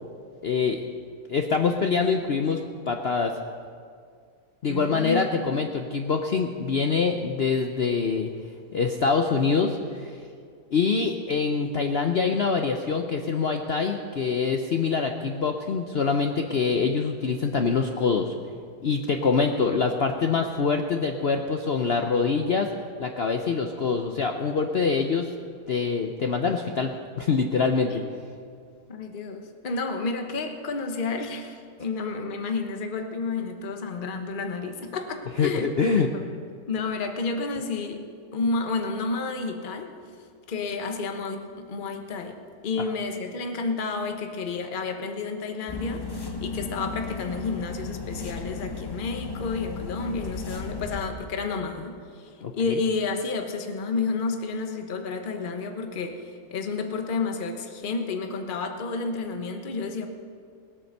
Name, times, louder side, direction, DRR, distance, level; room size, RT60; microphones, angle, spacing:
voice 1, 0.4-0.8 1.3-2.6 2.9-3.3 4.6-8.3 8.7-10.1 10.7-18.3 18.8-22.7 23.0-25.3 25.7-28.0 35.4-36.1 52.4-52.5, left 5 dB, 55° left, 4 dB, 0.7 m, -25 dB
voice 2, 4.7-5.3 27.9-28.1 28.9-35.7 36.1-36.3 36.7-38.1 38.3-39.9 40.5-60.1, left 4 dB, 35° left, 5 dB, 1.1 m, -31 dB
sound 1, 45.7-51.1, left 4 dB, 20° left, 0.7 m, -35 dB
19.5 x 8.7 x 6.6 m, 2.2 s
omnidirectional pair, 1.7 m